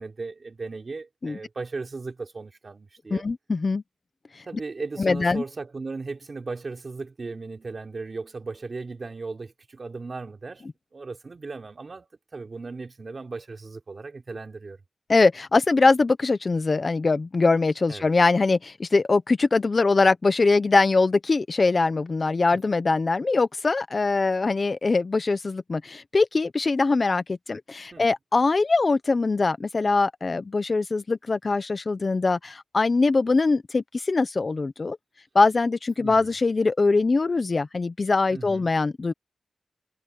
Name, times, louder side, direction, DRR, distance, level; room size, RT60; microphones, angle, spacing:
voice 1, 0.0-3.2 4.5-10.7 10.9-14.8 17.9-18.1 22.5-22.6 27.9-28.1 36.0-36.4 38.3-38.7, right 3 dB, 40° right, 3.4 m, -37 dB
voice 2, 3.1-3.8 4.3-4.4 5.0-5.4 15.1-35.0 35.3-39.1, left 3 dB, 40° left, 0.6 m, -22 dB
wide cardioid pair, 130°, 0 cm